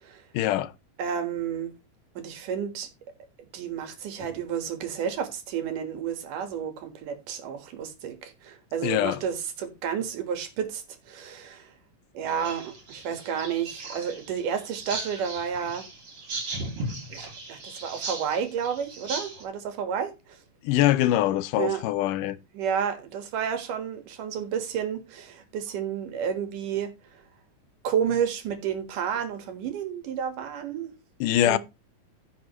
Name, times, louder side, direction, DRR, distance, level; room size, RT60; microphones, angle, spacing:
voice 1, 0.3-0.7 8.8-9.2 20.6-22.4 31.2-31.6, left 14 dB, 80° left, 2.2 m, -23 dB
voice 2, 1.0-1.7 2.2-2.9 3.4-11.7 12.1-15.9 17.1-20.4 21.6-21.8 22.5-27.2 27.8-30.9 31.4-31.6, right 8 dB, 75° right, 3.2 m, -31 dB
sound 1, 12.3-19.4, right 2 dB, 40° right, 3.6 m, -37 dB
15.5 x 6.0 x 3.1 m
omnidirectional pair, 3.7 m